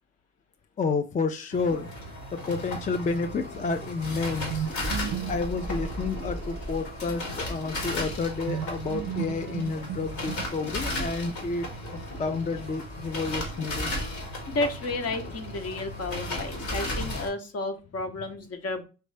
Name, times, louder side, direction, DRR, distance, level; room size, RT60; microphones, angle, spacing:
voice 1, 0.8-1.9 2.3-4.7 5.3-13.9, left 4 dB, 25° left, 8 dB, 0.4 m, -30 dB
sound 1, 1.5-17.3, left 1 dB, 80° left, 1.9 m, -35 dB
sound 2, 4.5-7.1 8.5-10.9, right 10 dB, 60° right, 0.4 m, -35 dB
voice 2, 14.5-18.8, left 2 dB, 55° left, 7 dB, 1.0 m, -32 dB
4.4 x 3.1 x 3.2 m, 0.32 s
cardioid pair, 90°, 30 cm